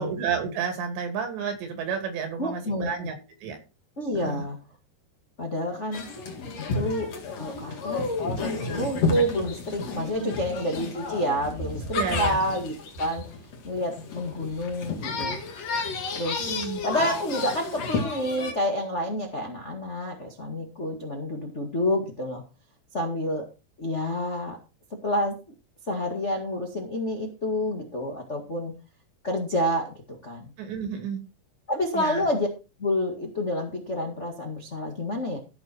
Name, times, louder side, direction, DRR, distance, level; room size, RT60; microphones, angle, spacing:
voice 1, 0.0-3.1 3.4-3.6 4.2-4.5 9.9-10.3 11.9-12.4 16.4-16.8 30.6-31.2 31.9-32.3, right 6 dB, 85° right, 5 dB, 4.9 m, -31 dB
voice 2, 2.4-2.9 4.0-4.6 5.4-6.0 6.6-7.1 7.4-13.2 13.6-15.4 16.1-16.6 16.8-22.4 22.9-23.4 23.8-24.6 25.0-25.4 25.9-28.7 29.2-30.5 31.7-32.5 32.8-35.4, left 1 dB, 85° left, 1 dB, 0.6 m, -29 dB
sound 1, 5.9-18.5, left 4 dB, 45° left, 2.5 m, -31 dB
15.5 x 6.5 x 4.4 m, 0.31 s
omnidirectional pair, 4.9 m